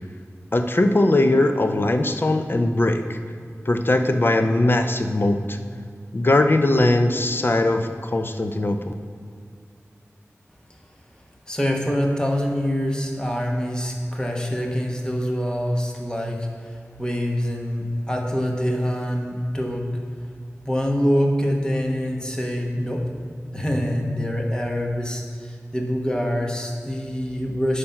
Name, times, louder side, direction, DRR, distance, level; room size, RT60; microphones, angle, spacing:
voice 1, 0.5-3.2 3.7-5.6 6.1-8.9, left 2 dB, 45° left, 7 dB, 0.6 m, -20 dB
voice 2, 11.5-19.9 20.6-23.1 23.5-27.8, equal, 15° left, 0 dB, 1.2 m, -25 dB
8.6 x 5.1 x 5.8 m, 2.2 s
wide cardioid pair, 65°, 5 cm